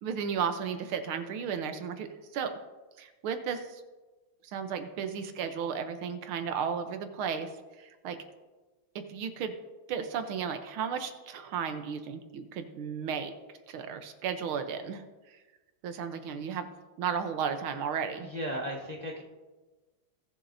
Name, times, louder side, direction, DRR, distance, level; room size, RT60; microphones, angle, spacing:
voice 1, 0.0-2.5 3.0-3.8 4.5-7.5 7.8-8.2 8.9-9.5 9.9-13.3 13.7-15.0 15.8-16.6 17.0-18.3, right 7 dB, 80° right, 8 dB, 1.7 m, -34 dB
voice 2, 18.2-19.2, equal, 30° left, -2 dB, 0.9 m, -35 dB
21.0 x 7.3 x 2.7 m, 1.2 s
omnidirectional pair, 2.3 m